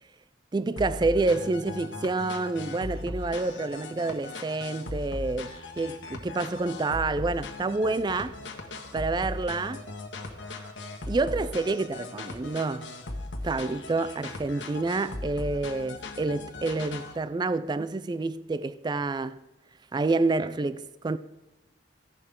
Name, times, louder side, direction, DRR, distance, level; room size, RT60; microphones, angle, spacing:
voice 1, 0.5-8.3 8.9-9.8 11.1-12.9 13.4-19.4 19.9-21.2, right 3 dB, 25° right, 0.3 m, -28 dB
sound 1, 0.8-17.2, left 2 dB, 85° left, 1.5 m, -38 dB
14.5 x 11.0 x 3.7 m
head